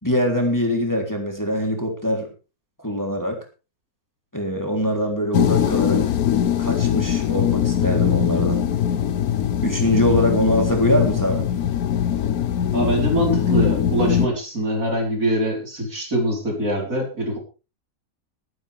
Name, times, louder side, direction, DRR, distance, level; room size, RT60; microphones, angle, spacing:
voice 1, 0.0-2.3 2.8-3.4 4.3-6.0 6.6-8.6 9.6-11.5, equal, 10° left, 2 dB, 3.3 m, -23 dB
sound 1, 5.3-14.3, left 9 dB, 75° left, 1.4 m, -21 dB
voice 2, 12.7-17.4, right 1 dB, 60° right, 0 dB, 4.8 m, -23 dB
21.5 x 9.9 x 3.5 m, 0.32 s
omnidirectional pair, 1.6 m